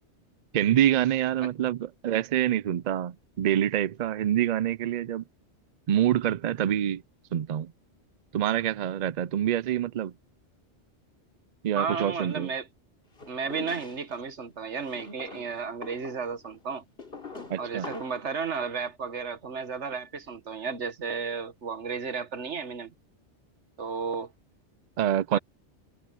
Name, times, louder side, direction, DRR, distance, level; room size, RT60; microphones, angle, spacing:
voice 1, 0.5-5.2 5.9-7.0 7.3-7.7 8.3-10.1 11.6-12.5 17.5-17.9 25.0-25.4, right 11 dB, 60° right, 0.4 m, -26 dB
voice 2, 11.7-12.7 13.3-16.8 17.6-22.9 23.8-24.3 25.3-25.4, right 5 dB, 75° right, 1.7 m, -33 dB
sound 1, 13.2-14.2 14.8-18.3, left 4 dB, 55° left, 3.2 m, -44 dB
omnidirectional pair, 1.2 m